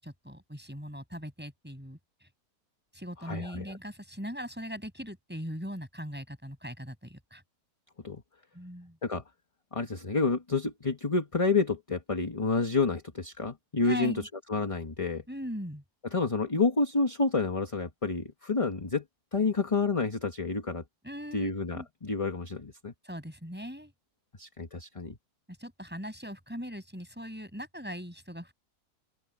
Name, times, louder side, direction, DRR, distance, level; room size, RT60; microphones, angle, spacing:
voice 1, 0.0-2.3 2.9-7.4 8.5-9.0 13.8-14.3 15.3-15.8 21.0-21.9 23.0-23.9 25.6-28.5, equal, 5° right, 6.2 m, -40 dB
voice 2, 3.2-3.8 8.0-8.2 9.0-9.2 9.7-14.1 14.5-15.2 16.1-19.0 19.3-20.8 21.3-22.9 24.4-25.2, left 3 dB, 20° left, 1.3 m, -29 dB
open air
omnidirectional pair, 1.7 m